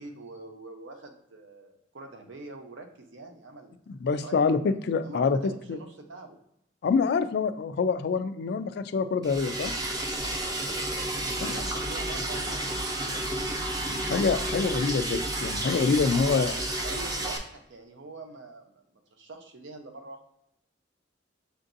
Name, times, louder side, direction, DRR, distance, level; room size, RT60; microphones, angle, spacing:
voice 1, 0.0-3.8 4.2-4.5 5.0-6.4 10.1-10.6 11.4-13.4 16.1-20.2, right 3 dB, 80° right, 5 dB, 0.7 m, -44 dB
voice 2, 4.0-5.8 6.8-9.7 11.4-11.5 14.0-16.5, left 5 dB, 60° left, 11 dB, 0.3 m, -26 dB
Liquid, 9.2-17.4, right 1 dB, 20° right, 0.5 m, -31 dB
6.8 x 2.5 x 2.6 m, 0.77 s
head